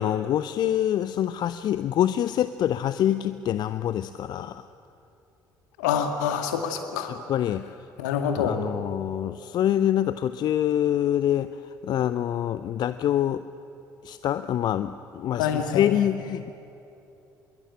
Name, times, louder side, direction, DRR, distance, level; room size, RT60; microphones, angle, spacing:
voice 1, 0.0-4.6 7.1-7.7 8.4-11.5 11.8-13.4 14.0-16.5, left 11 dB, 45° left, 13 dB, 0.6 m, -25 dB
voice 2, 5.8-7.1 8.0-8.6 15.3-15.9, left 7 dB, 65° left, 6 dB, 2.1 m, -26 dB
25.0 x 22.0 x 8.8 m, 2.8 s
figure-of-eight pair, 55°, 10 cm